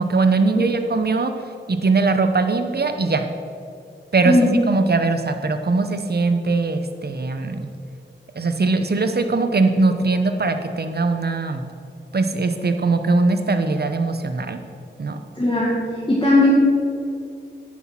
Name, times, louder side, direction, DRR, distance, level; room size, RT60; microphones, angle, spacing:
voice 1, 0.0-1.3 1.7-3.2 4.1-7.7 8.4-11.6 12.1-14.6 15.0-15.2, right 3 dB, 55° right, 7 dB, 0.9 m, -21 dB
voice 2, 15.4-16.5, left 2 dB, 25° left, -6 dB, 1.9 m, -18 dB
9.1 x 6.0 x 5.7 m, 2.4 s
cardioid pair, 40°, 20 cm